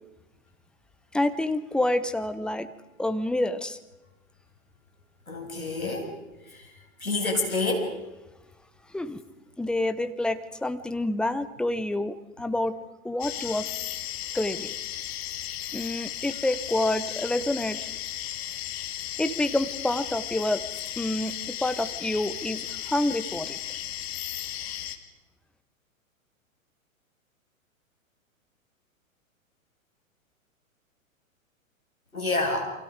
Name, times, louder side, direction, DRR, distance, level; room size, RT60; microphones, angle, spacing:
voice 1, 1.1-2.7 3.0-3.8 8.9-9.2 9.6-12.8 13.0-13.7 14.3-14.8 15.7-17.9 19.2-20.6 21.0-23.6, left 1 dB, ahead, 10 dB, 0.7 m, -28 dB
voice 2, 5.3-6.1 6.5-6.6 7.0-8.0 32.1-32.6, left 2 dB, 85° left, 2 dB, 6.5 m, -28 dB
sound 1, 13.2-25.0, left 12 dB, 45° left, 2.0 m, -35 dB
29.0 x 24.5 x 5.1 m, 1.0 s
figure-of-eight pair, 105°, 41 cm